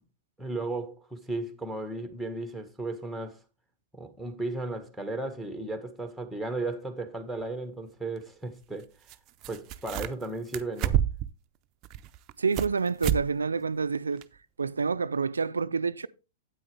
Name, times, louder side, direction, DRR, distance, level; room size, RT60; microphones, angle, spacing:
voice 1, 0.4-3.4 3.9-8.9 9.5-11.0, right 2 dB, ahead, 1.6 m, -35 dB
sound 1, 7.4-7.5 9.1-9.2 9.4-10.3 10.5-11.3 11.8-12.7 13.0-13.3 13.6-13.7 14.2-14.3, right 11 dB, 35° right, 0.6 m, -29 dB
voice 2, 12.4-14.3 14.6-16.1, right 5 dB, 80° right, 0.4 m, -28 dB
8.8 x 8.7 x 3.4 m
figure-of-eight pair, 105°, 0 cm